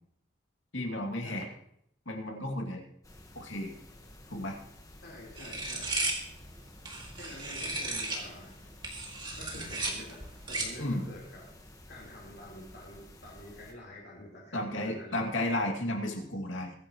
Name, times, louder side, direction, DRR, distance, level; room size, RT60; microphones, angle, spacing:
voice 1, 0.7-1.4 2.1-2.8 3.4-3.7 4.3-4.6 10.8-11.1 14.5-16.7, left 1 dB, 80° left, 2 dB, 2.5 m, -33 dB
sound 1, 3.0-13.7, left 1 dB, 15° left, 1.4 m, -53 dB
voice 2, 5.0-6.0 7.2-8.6 9.4-11.5 11.9-15.3, left 1 dB, 55° left, -4 dB, 4.0 m, -48 dB
sound 2, 5.4-8.3 8.7-10.9, right 2 dB, 25° right, 2.3 m, -35 dB
22.0 x 10.0 x 3.1 m, 0.72 s
head